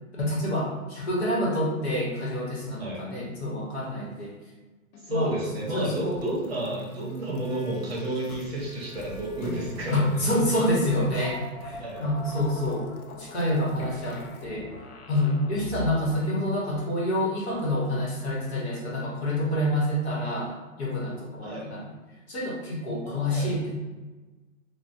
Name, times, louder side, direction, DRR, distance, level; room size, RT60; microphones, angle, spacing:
voice 1, 0.2-4.3 5.1-5.3 5.7-6.2 9.9-11.4 11.6-14.6 15.1-21.8 22.3-23.7, left 1 dB, 50° left, -5 dB, 1.0 m, -27 dB
voice 2, 2.8-3.1 5.0-10.2 11.8-12.0 21.4-21.7 23.0-23.5, right 1 dB, 45° right, -3 dB, 0.8 m, -31 dB
sound 1, 4.9-16.2, left 2 dB, 85° left, 0.6 m, -42 dB
3.0 x 2.1 x 2.6 m, 1.2 s
hypercardioid pair, 170°, 42 cm